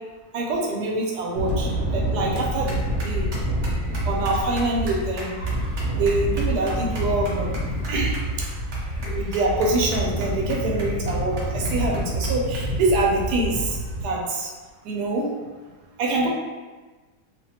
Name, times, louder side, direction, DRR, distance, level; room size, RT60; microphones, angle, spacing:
voice 1, 0.3-3.3 4.0-5.3 5.9-8.2 9.0-13.8 14.0-14.5 14.8-15.3 16.0-16.3, right 2 dB, 90° right, -2 dB, 1.2 m, -25 dB
sound 1, 1.3-14.0, right 1 dB, 55° right, 0.9 m, -27 dB
2.8 x 2.5 x 2.7 m, 1.3 s
omnidirectional pair, 1.7 m